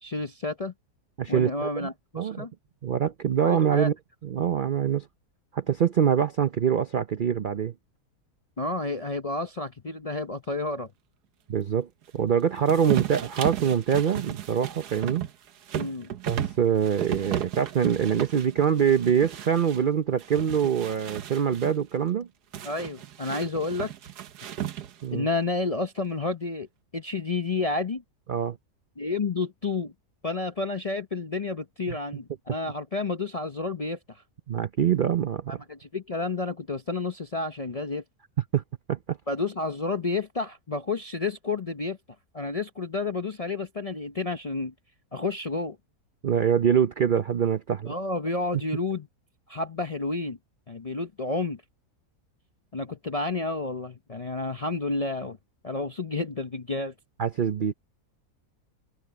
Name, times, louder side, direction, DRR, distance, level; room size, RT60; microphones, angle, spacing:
voice 1, 0.0-0.7 1.3-2.5 3.4-3.9 8.6-10.9 15.7-16.1 22.6-23.9 25.1-26.7 26.9-28.0 29.0-29.9 30.2-34.2 35.5-38.0 39.3-42.0 42.3-44.7 45.1-45.8 47.9-49.1 49.5-50.4 50.7-51.6 52.7-55.4 55.6-56.9, left 3 dB, 40° left, 0.5 m, -30 dB
voice 2, 1.2-1.9 2.1-2.5 2.8-3.9 4.2-5.1 5.5-7.7 11.5-11.9 12.1-15.3 16.3-22.3 25.0-25.3 28.3-28.6 34.5-35.6 38.5-38.6 38.9-39.2 46.2-47.9 57.2-57.7, right 8 dB, 65° right, 0.5 m, -24 dB
sound 1, 12.7-19.8 20.2-21.7 22.5-25.1, right 11 dB, 85° right, 1.5 m, -35 dB
omnidirectional pair, 1.7 m